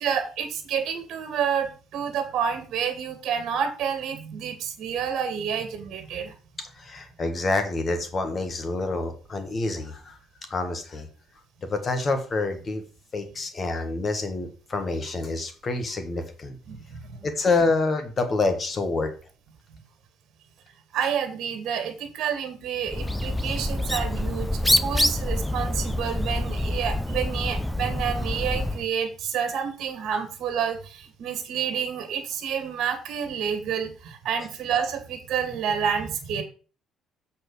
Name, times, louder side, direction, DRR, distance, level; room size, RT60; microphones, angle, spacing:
voice 1, 0.0-6.3 16.7-17.2 19.7-19.8 20.9-36.4, right 7 dB, 60° right, 6 dB, 2.2 m, -29 dB
voice 2, 6.8-10.1 10.5-11.1 11.7-12.8 13.1-16.6 17.2-19.1 34.4-34.5, left 3 dB, 25° left, 7 dB, 1.4 m, -27 dB
Bird, 22.9-28.8, left 1 dB, 5° left, 0.3 m, -26 dB
7.7 x 4.5 x 6.6 m, 0.37 s
cardioid pair, 170°, 0 cm